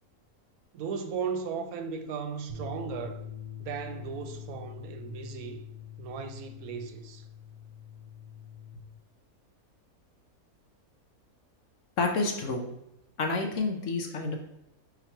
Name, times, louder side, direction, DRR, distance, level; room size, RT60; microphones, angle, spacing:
voice 1, 0.7-3.2 3.6-5.6 6.0-7.2, right 6 dB, 80° right, 1.1 m, -36 dB
sound 1, 2.5-8.8, left 8 dB, 30° left, 0.8 m, -44 dB
voice 2, 12.0-12.7 13.2-14.4, left 3 dB, 65° left, 0.9 m, -29 dB
3.9 x 2.9 x 4.5 m
omnidirectional pair, 1.6 m